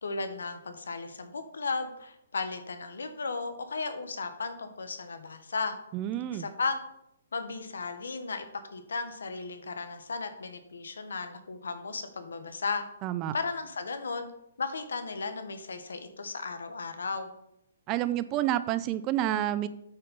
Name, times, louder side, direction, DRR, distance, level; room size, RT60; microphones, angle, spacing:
voice 1, 0.0-5.8 6.3-6.8 7.3-8.4 8.7-12.8 13.3-14.3 14.6-17.3, left 4 dB, 80° left, 8 dB, 1.1 m, -35 dB
voice 2, 5.9-6.5 13.0-13.3 17.9-19.7, right 13 dB, 30° right, 15 dB, 0.4 m, -29 dB
8.7 x 4.4 x 5.4 m, 0.81 s
hypercardioid pair, 140°, 0 cm